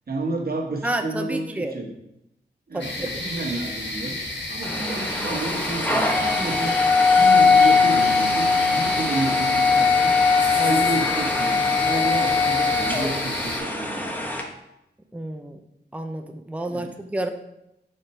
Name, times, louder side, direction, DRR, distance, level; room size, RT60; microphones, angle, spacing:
voice 1, 0.1-1.9 2.7-4.2 4.5-6.8 7.1-10.1 10.5-14.2 16.7-16.9, right 2 dB, 55° right, 1 dB, 1.3 m, -30 dB
voice 2, 0.8-1.8 2.7-3.1 15.1-15.6 15.9-17.3, right 1 dB, 5° right, 5 dB, 0.6 m, -30 dB
sound 1, 2.8-13.6, left 2 dB, 80° left, 1.3 m, -31 dB
sound 2, 4.6-14.4, left 4 dB, 10° left, 1.0 m, -21 dB
Bass guitar, 7.2-13.5, right 8 dB, 85° right, 0.6 m, -40 dB
5.0 x 4.4 x 5.4 m, 0.85 s
cardioid pair, 65°, 18 cm